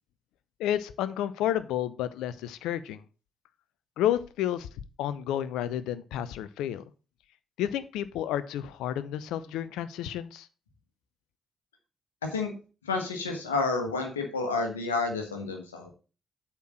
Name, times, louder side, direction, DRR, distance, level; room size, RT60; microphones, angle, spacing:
voice 1, 0.6-3.0 4.0-4.7 5.0-6.8 7.6-10.5, left 11 dB, 70° left, 15 dB, 0.6 m, -31 dB
voice 2, 12.2-12.5 12.8-15.9, left 3 dB, 85° left, 4 dB, 1.4 m, -30 dB
8.2 x 4.5 x 6.2 m, 0.34 s
figure-of-eight pair, 40°, 0 cm